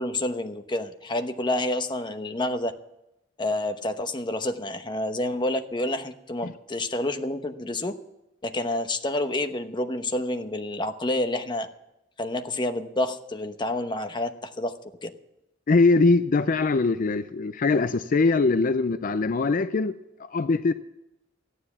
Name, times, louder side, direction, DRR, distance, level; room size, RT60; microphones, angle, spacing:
voice 1, 0.0-2.7 3.4-8.0 8.4-11.7 12.2-14.7 15.0-15.1, left 1 dB, 25° left, 7 dB, 0.9 m, -28 dB
voice 2, 15.7-19.9 20.2-20.7, left 3 dB, 45° left, 12 dB, 0.5 m, -22 dB
14.0 x 9.9 x 7.1 m, 0.88 s
head